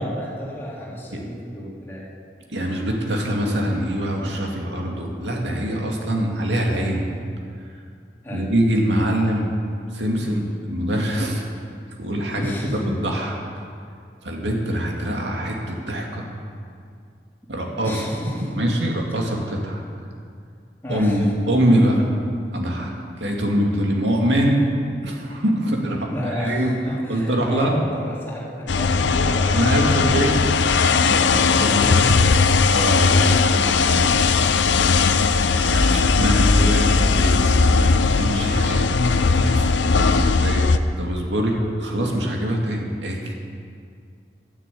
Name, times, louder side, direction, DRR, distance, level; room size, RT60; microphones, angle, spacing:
voice 1, 0.0-2.0 8.2-8.5 12.3-12.9 17.8-18.6 20.8-21.3 26.1-30.0 31.3-32.3, equal, 15° left, -7 dB, 3.4 m, -31 dB
voice 2, 2.5-7.0 8.3-9.5 9.9-11.5 12.0-12.5 12.9-13.3 14.2-16.3 17.5-18.1 18.5-19.8 20.9-22.1 22.5-22.9 23.2-24.6 25.0-26.7 27.1-27.8 29.5-30.4 31.0-31.9 32.7-34.1 35.6-37.9 38.1-43.3, equal, 85° right, 0 dB, 2.3 m, -24 dB
sound 1, 28.7-40.8, left 4 dB, 90° left, 0.6 m, -18 dB
12.0 x 10.5 x 8.5 m, 2.3 s
head